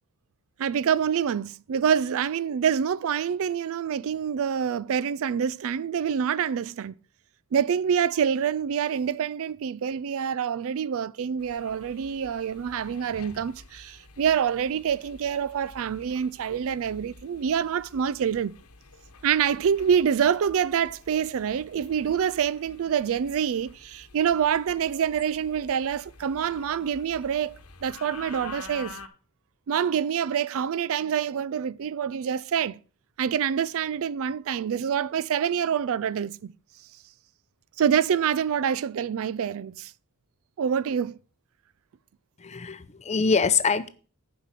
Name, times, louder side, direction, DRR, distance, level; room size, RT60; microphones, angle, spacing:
voice 1, 0.6-6.9 7.5-18.5 19.2-27.6 27.8-29.0 29.7-32.8 33.2-36.5 37.8-39.9 40.6-41.2, right 8 dB, 65° right, 0.4 m, -26 dB
sound 1, 11.4-29.1, left 4 dB, 75° left, 1.1 m, -49 dB
voice 2, 42.4-43.9, left 5 dB, 30° left, 0.6 m, -24 dB
7.4 x 5.3 x 7.4 m
head